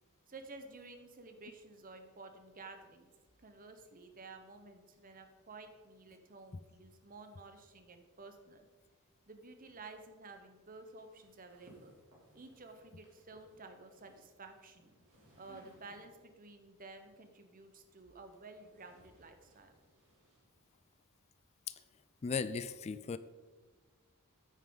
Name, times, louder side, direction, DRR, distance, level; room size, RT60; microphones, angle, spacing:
voice 1, 0.3-3.1 3.4-8.7 9.3-12.0 12.3-14.9 15.4-19.7, right 3 dB, 40° right, 6 dB, 1.0 m, -53 dB
sound 1, 10.8-16.4 17.5-21.0, right 1 dB, 60° right, 2.8 m, -66 dB
voice 2, 22.2-23.2, left 5 dB, 30° left, 14 dB, 0.3 m, -36 dB
9.4 x 8.9 x 3.9 m, 1.4 s
head